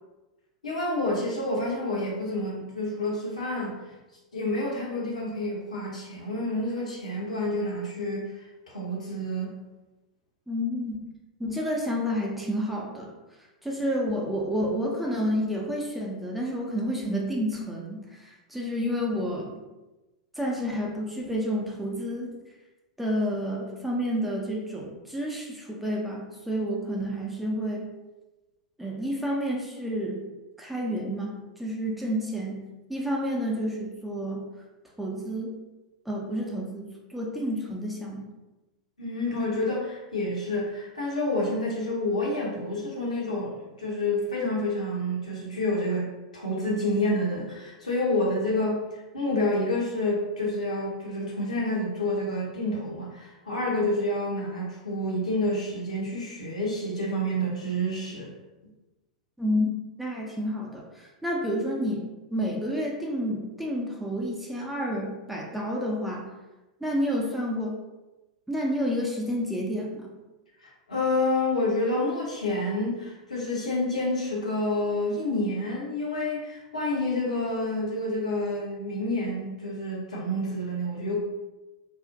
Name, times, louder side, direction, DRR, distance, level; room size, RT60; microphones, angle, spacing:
voice 1, 0.6-3.8 4.3-8.3 8.7-9.6 39.0-58.3 70.6-81.2, left 1 dB, 75° left, -4 dB, 0.7 m, -28 dB
voice 2, 10.5-11.1 11.4-13.1 13.6-19.6 20.4-22.3 23.0-27.9 28.8-30.3 30.6-32.6 32.9-34.4 35.0-35.5 36.1-38.3 59.4-59.7 60.0-66.3 66.8-67.8 68.5-70.1, equal, 5° right, -2 dB, 0.4 m, -30 dB
2.3 x 2.0 x 2.6 m, 1.1 s
figure-of-eight pair, 95°, 4 cm